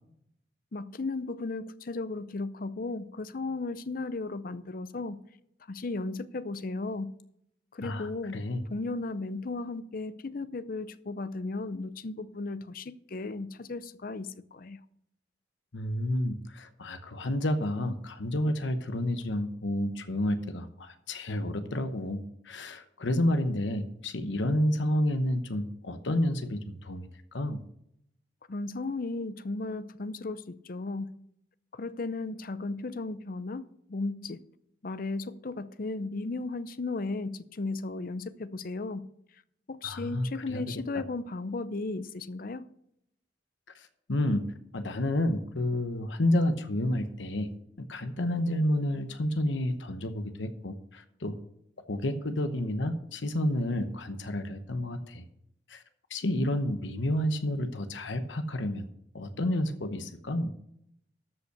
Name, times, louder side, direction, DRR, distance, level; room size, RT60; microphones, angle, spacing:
voice 1, 0.7-5.2 5.7-7.1 7.7-14.8 28.5-31.1 31.7-34.4 34.8-39.0 39.7-42.6, left 3 dB, 50° left, 0.6 m, -35 dB
voice 2, 7.8-8.6 15.7-27.0 27.3-27.6 39.8-40.6 43.7-44.4 44.7-47.5 47.8-51.4 51.9-55.2 55.7-55.8 56.1-58.8 59.1-60.5, left 1 dB, 80° left, 1.0 m, -30 dB
13.0 x 5.5 x 6.7 m
head